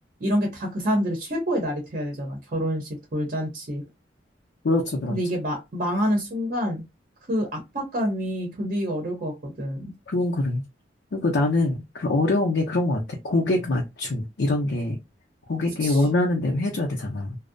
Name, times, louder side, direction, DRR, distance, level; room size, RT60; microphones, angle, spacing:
voice 1, 0.2-3.8 5.1-6.8 7.3-9.9 15.8-16.0, equal, 45° right, 0.7 m, -27 dB
voice 2, 4.6-5.2 10.1-10.6 11.1-15.0 15.5-17.4, left 2 dB, 70° left, 0.5 m, -24 dB
2.6 x 2.0 x 2.5 m
head